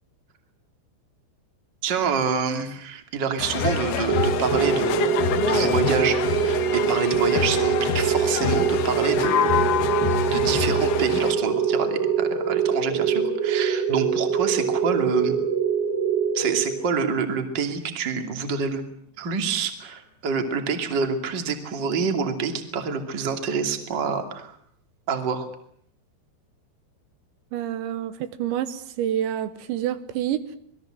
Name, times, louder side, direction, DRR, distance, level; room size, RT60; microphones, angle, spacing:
voice 1, 1.8-5.1 5.4-9.5 10.2-15.4 16.3-18.8 19.2-24.5 25.1-25.5, right 5 dB, 30° right, 6 dB, 2.3 m, -27 dB
sound 1, 3.4-11.3, left 7 dB, 65° left, 3.1 m, -27 dB
sound 2, 4.1-17.2, right 7 dB, 45° right, 4.7 m, -24 dB
sound 3, 9.2-13.1, left 10 dB, 50° left, 3.6 m, -29 dB
voice 2, 27.5-30.4, right 11 dB, 75° right, 11 dB, 3.4 m, -28 dB
27.5 x 21.0 x 7.7 m, 0.66 s
omnidirectional pair, 5.4 m